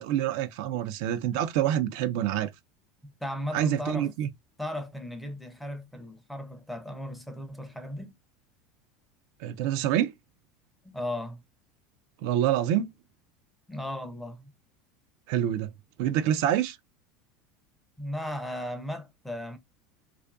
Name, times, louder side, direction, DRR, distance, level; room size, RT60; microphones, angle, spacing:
voice 1, 0.0-2.5 3.5-4.3 9.4-10.1 12.2-12.9 15.3-15.7 16.0-16.8, right 11 dB, 65° right, 0.4 m, -26 dB
voice 2, 3.0-4.1 4.6-8.1 10.8-11.4 13.7-14.5 18.0-19.6, left 1 dB, 5° left, 0.5 m, -36 dB
2.5 x 2.4 x 2.2 m
supercardioid pair, 135°, 0 cm